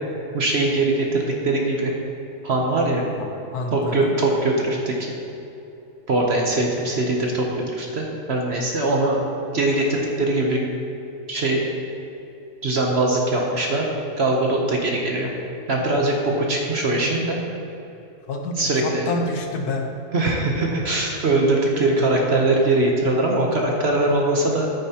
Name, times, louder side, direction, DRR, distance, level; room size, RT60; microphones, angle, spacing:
voice 1, 0.3-1.9 2.4-3.1 3.7-4.9 6.1-9.2 9.5-10.6 11.3-11.6 12.6-13.9 14.2-15.3 15.7-17.4 18.6-19.0 20.1-24.7, right 2 dB, 50° right, 0 dB, 0.9 m, -21 dB
voice 2, 3.2-4.1 18.3-19.9, left 2 dB, 75° left, 3 dB, 1.3 m, -28 dB
10.0 x 9.2 x 2.9 m, 2.9 s
omnidirectional pair, 1.7 m